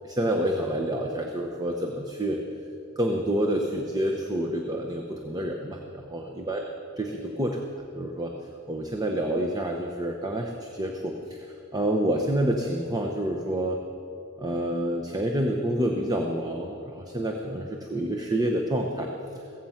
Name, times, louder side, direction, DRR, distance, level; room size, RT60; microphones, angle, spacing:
voice 1, 0.0-2.4 3.0-6.6 7.0-7.7 7.9-8.3 8.7-13.8 14.4-19.1, right 1 dB, 15° right, 2 dB, 0.9 m, -28 dB
16.0 x 15.5 x 5.8 m, 2.7 s
head